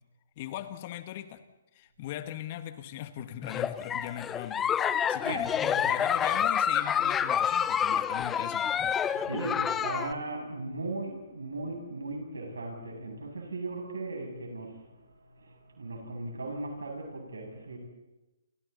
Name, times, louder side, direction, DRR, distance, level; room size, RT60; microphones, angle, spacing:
voice 1, 0.4-1.4 1.7-4.7 5.1-8.8, left 12 dB, 40° left, 10 dB, 1.8 m, -39 dB
Giggle, 3.4-10.1, left 8 dB, 15° left, 0.7 m, -28 dB
voice 2, 9.1-14.8 15.3-17.8, right 2 dB, 75° right, 2 dB, 7.6 m, -37 dB
30.0 x 28.5 x 4.2 m, 1.0 s
figure-of-eight pair, 130°, 0 cm